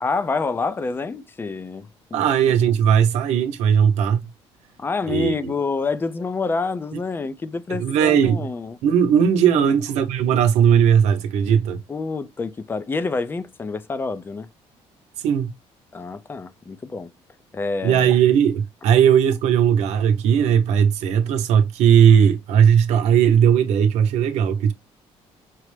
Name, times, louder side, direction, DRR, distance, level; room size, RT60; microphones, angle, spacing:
voice 1, 0.0-2.2 4.8-8.8 9.5-9.7 11.9-14.5 15.9-17.1 17.5-18.1, left 4 dB, 20° left, 0.4 m, -27 dB
voice 2, 2.1-4.3 5.1-5.3 7.7-8.5 8.8-11.8 15.2-15.5 17.8-24.7, right 8 dB, 90° right, 0.8 m, -17 dB
5.9 x 2.0 x 3.2 m
cardioid pair, 135°, 11 cm